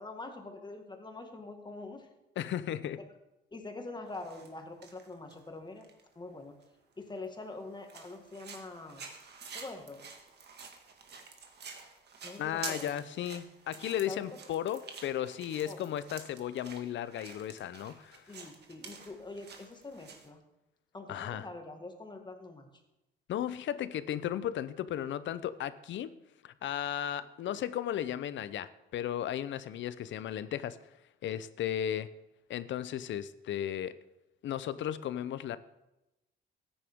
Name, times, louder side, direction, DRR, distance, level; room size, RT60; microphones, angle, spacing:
voice 1, 0.0-2.1 3.5-5.8 6.2-6.6 7.0-9.1 9.5-10.1 12.2-12.9 14.1-14.3 15.7-15.9 18.3-20.4 20.9-22.7, left 2 dB, 20° left, 4 dB, 1.8 m, -44 dB
voice 2, 2.4-3.0 12.4-18.2 21.1-21.5 23.3-26.2 26.4-30.8 31.2-32.1 32.5-33.9 34.4-35.6, left 10 dB, 70° left, 15 dB, 0.6 m, -35 dB
sound 1, 4.1-4.5 4.8-6.0 6.6-6.7 7.2-7.3 7.9-20.3, right 5 dB, 55° right, 1.7 m, -49 dB
14.0 x 9.9 x 3.6 m, 0.95 s
cardioid pair, 90°, 20 cm